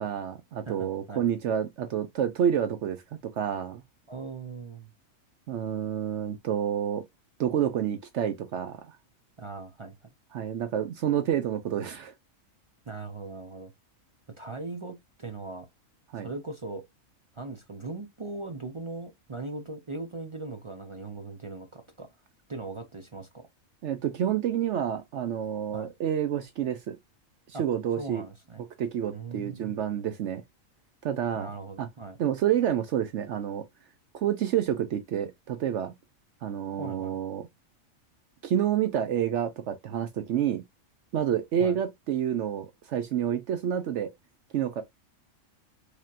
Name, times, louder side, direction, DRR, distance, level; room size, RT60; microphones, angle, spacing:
voice 1, 0.0-3.8 5.5-7.0 7.4-9.0 10.3-12.1 16.1-16.3 23.8-27.0 27.5-28.2 28.8-30.4 31.0-31.5 31.8-31.9 32.2-33.6 34.1-35.9 36.4-37.5 38.4-40.6 41.1-44.1 44.5-44.8, right 9 dB, 65° right, 0.8 m, -29 dB
voice 2, 0.7-1.2 4.1-4.9 9.4-10.0 12.9-13.7 14.4-15.7 16.2-16.8 17.3-22.1 22.5-23.4 25.7-25.9 27.5-27.6 28.0-28.6 29.1-29.8 31.4-32.2 36.8-37.2 41.6-41.8, right 3 dB, 40° right, 0.4 m, -39 dB
4.9 x 2.9 x 2.4 m
omnidirectional pair, 1.4 m